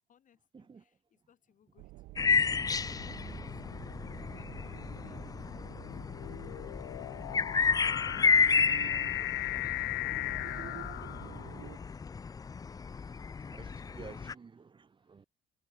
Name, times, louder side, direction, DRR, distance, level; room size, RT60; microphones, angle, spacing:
voice 1, 0.1-2.7 3.0-5.2 5.6-7.1 14.2-14.7 15.0-15.3, left 9 dB, 50° left, 6.7 m, -69 dB
sound 1, 1.8-11.8, right 20 dB, 85° right, 0.8 m, -50 dB
sound 2, 2.2-14.3, left 5 dB, 20° left, 0.5 m, -32 dB
sound 3, 2.4-2.8 3.6-11.8, left 21 dB, 85° left, 0.8 m, -38 dB
voice 2, 8.1-9.0 12.9-15.3, right 5 dB, 30° right, 2.8 m, -54 dB
cardioid pair, 110°, 17 cm